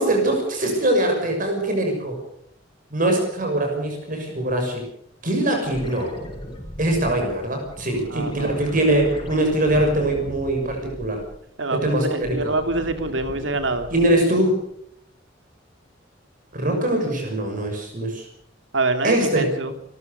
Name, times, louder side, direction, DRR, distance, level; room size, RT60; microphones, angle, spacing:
voice 1, 0.0-2.2 2.9-4.8 5.2-6.1 6.8-11.2 11.7-12.4 13.9-14.6 16.5-18.3 19.0-19.5, right 1 dB, 45° right, 3 dB, 6.3 m, -22 dB
sound 1, 5.6-11.4 11.8-14.3 16.7-16.8, equal, 25° left, 6.0 m, -38 dB
voice 2, 8.1-8.6 11.6-13.9 18.7-19.7, right 2 dB, 80° right, 8 dB, 2.7 m, -25 dB
29.5 x 14.0 x 6.8 m, 0.71 s
head